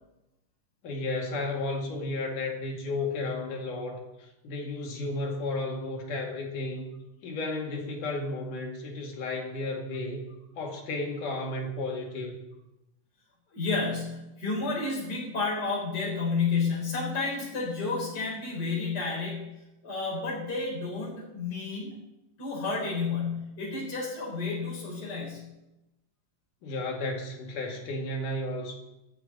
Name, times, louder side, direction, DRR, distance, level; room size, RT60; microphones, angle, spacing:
voice 1, 0.8-6.9 7.2-10.2 10.6-12.3 26.6-28.8, left 2 dB, 70° left, 0 dB, 3.7 m, -33 dB
voice 2, 13.5-19.5 19.8-21.9 22.4-25.4, left 4 dB, 30° left, -5 dB, 4.6 m, -31 dB
13.5 x 7.0 x 9.0 m, 0.94 s
omnidirectional pair, 3.8 m